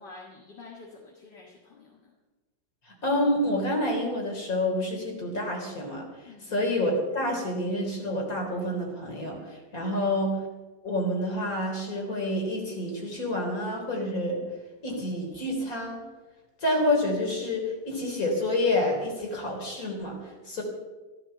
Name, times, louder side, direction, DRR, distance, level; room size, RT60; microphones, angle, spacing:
voice 1, 0.0-2.1 6.3-6.5 9.9-10.1, left 3 dB, 65° left, -2 dB, 2.6 m, -48 dB
voice 2, 2.9-10.4 10.8-14.4 14.8-16.0 16.6-20.6, left 1 dB, 45° left, 0 dB, 4.2 m, -28 dB
14.0 x 14.0 x 6.8 m, 1.2 s
omnidirectional pair, 2.0 m